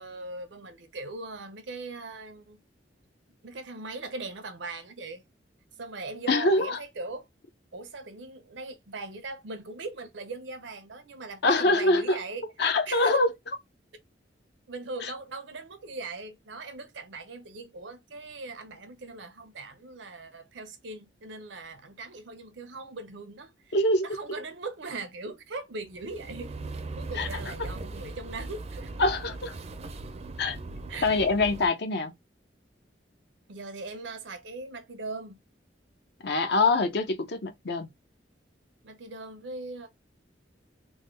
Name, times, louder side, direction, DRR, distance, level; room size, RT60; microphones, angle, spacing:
voice 1, 0.0-2.6 3.4-5.2 5.8-7.3 7.7-12.4 12.9-13.2 14.7-23.7 24.0-26.6 26.9-28.9 30.9-31.2 33.5-35.4 38.8-39.9, right 3 dB, 90° right, 0.7 m, -40 dB
voice 2, 6.3-6.8 11.4-12.2 12.6-13.3 15.0-15.1 23.7-24.0 27.1-27.3 29.0-29.5 30.4-30.6 31.0-32.1 36.2-37.9, left 2 dB, 65° left, 0.7 m, -24 dB
sound 1, 25.9-31.7, right 2 dB, 35° right, 0.4 m, -39 dB
3.5 x 2.2 x 3.1 m
head